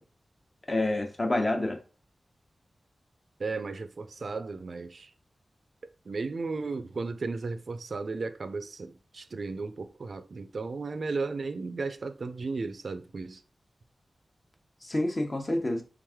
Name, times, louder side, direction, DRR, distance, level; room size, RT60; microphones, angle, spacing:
voice 1, 0.7-1.8 14.8-15.8, left 1 dB, 35° left, 0.9 m, -28 dB
voice 2, 3.4-5.1 6.1-13.4, right 4 dB, 65° right, 0.4 m, -35 dB
3.5 x 3.1 x 3.5 m
wide cardioid pair, 80°, 0 cm